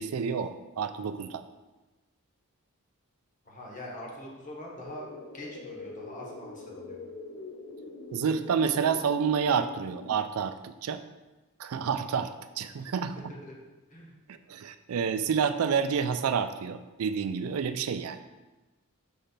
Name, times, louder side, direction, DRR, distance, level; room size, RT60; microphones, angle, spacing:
voice 1, 0.0-1.4 8.1-11.0 11.6-12.3 12.6-13.3 14.5-18.2, right 6 dB, 75° right, 10 dB, 0.4 m, -29 dB
voice 2, 3.4-5.1 5.3-7.0 12.7-13.5 13.9-14.1, left 1 dB, 35° left, -3 dB, 1.3 m, -44 dB
sound 1, 4.8-10.1, left 2 dB, 65° left, 0.7 m, -44 dB
5.2 x 3.4 x 5.7 m, 1.1 s
head